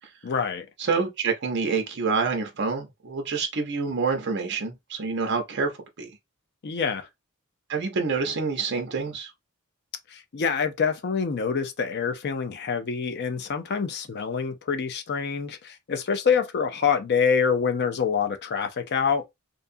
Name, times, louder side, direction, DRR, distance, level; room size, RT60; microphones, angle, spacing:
voice 1, 0.2-0.7 6.6-7.1 10.1-19.3, left 6 dB, 50° left, 0.5 m, -26 dB
voice 2, 0.8-5.7 6.0-6.1 7.7-9.3, right 4 dB, 55° right, 0.6 m, -27 dB
2.6 x 2.3 x 2.5 m
head